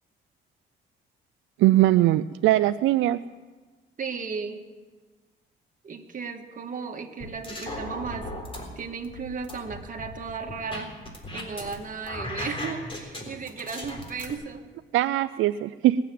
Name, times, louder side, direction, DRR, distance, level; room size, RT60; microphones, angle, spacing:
voice 1, 1.6-3.2 14.9-16.0, right 15 dB, 85° right, 11 dB, 0.4 m, -21 dB
voice 2, 4.0-4.6 5.8-8.3 8.8-10.9 11.3-14.6, right 5 dB, 40° right, 4 dB, 1.8 m, -35 dB
sound 1, 7.2-8.6 9.0-11.7 12.0-14.3, left 1 dB, 25° left, 3.8 m, -36 dB
20.0 x 7.6 x 9.2 m, 1.3 s
cardioid pair, 90°, 20 cm